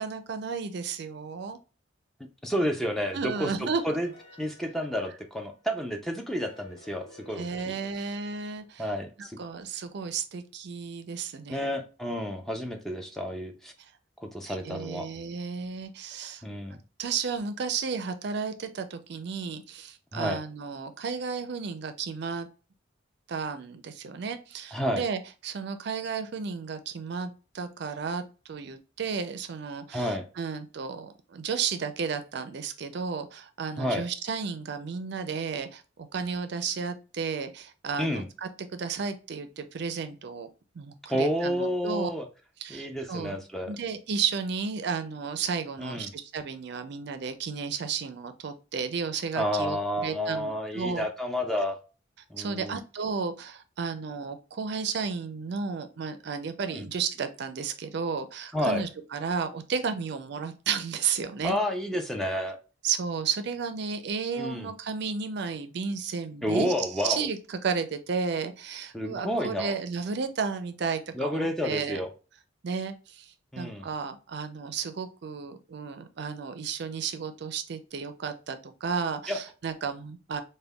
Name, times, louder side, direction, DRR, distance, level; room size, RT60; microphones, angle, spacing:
voice 1, 0.0-1.6 3.1-3.8 7.3-8.9 9.2-11.7 14.4-16.4 17.0-22.5 23.3-28.2 28.5-35.8 36.1-40.5 40.7-42.1 42.6-43.4 43.7-51.1 52.4-61.6 62.8-72.0 72.6-80.4, right 5 dB, 60° right, 9 dB, 0.4 m, -33 dB
voice 2, 2.4-4.1 4.4-7.7 8.8-9.4 11.5-13.7 14.2-15.1 16.4-16.8 20.1-20.4 24.7-25.0 29.9-30.2 33.8-34.0 38.0-38.3 41.1-42.3 42.7-43.7 45.8-46.1 49.3-51.8 52.3-52.8 56.7-56.9 58.5-58.8 61.4-62.6 64.4-64.7 66.4-67.3 68.9-69.8 71.1-72.1 73.5-73.9 79.3-79.4, equal, ahead, 3 dB, 0.4 m, -30 dB
sound 1, 2.8-5.7 6.4-9.2, equal, 65° left, 1.2 m, -53 dB
5.1 x 2.2 x 2.2 m, 0.34 s
head